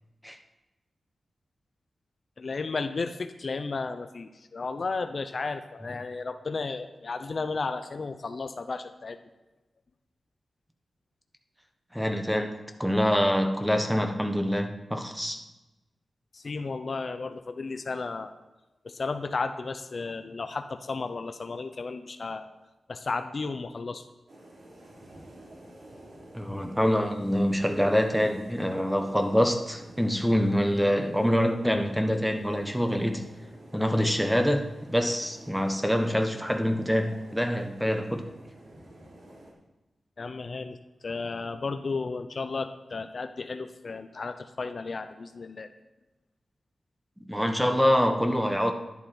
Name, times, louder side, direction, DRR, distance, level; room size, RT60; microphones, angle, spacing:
voice 1, 2.4-9.2 16.3-18.3 18.8-22.5 22.9-24.0 40.2-40.8 41.0-45.7, left 4 dB, 50° left, 0.7 m, -33 dB
voice 2, 11.9-15.4 26.3-33.3 33.7-38.3 47.3-48.7, equal, 5° right, 1.3 m, -25 dB
sound 1, 24.3-39.5, right 1 dB, 65° right, 3.5 m, -49 dB
11.0 x 11.0 x 4.4 m
cardioid pair, 80°, 0 cm